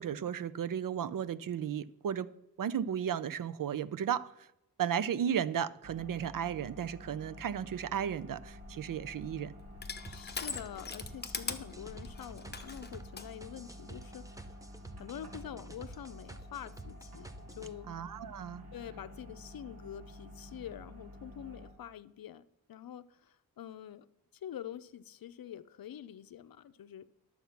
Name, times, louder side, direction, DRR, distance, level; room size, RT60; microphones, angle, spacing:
voice 1, 0.0-2.3 2.6-4.3 4.8-9.5 17.9-18.6, right 8 dB, 65° right, 0.5 m, -34 dB
sound 1, 5.8-21.7, left 1 dB, 85° right, 3.4 m, -51 dB
Crushing, 8.4-13.3, left 4 dB, 30° left, 0.8 m, -42 dB
sound 2, 10.0-17.7, right 2 dB, 10° right, 0.6 m, -49 dB
voice 2, 10.1-14.3 15.0-17.3 17.6-17.9 18.7-24.1 24.3-27.1, left 10 dB, 70° left, 0.6 m, -46 dB
11.5 x 7.1 x 5.8 m
wide cardioid pair, 170°, 36 cm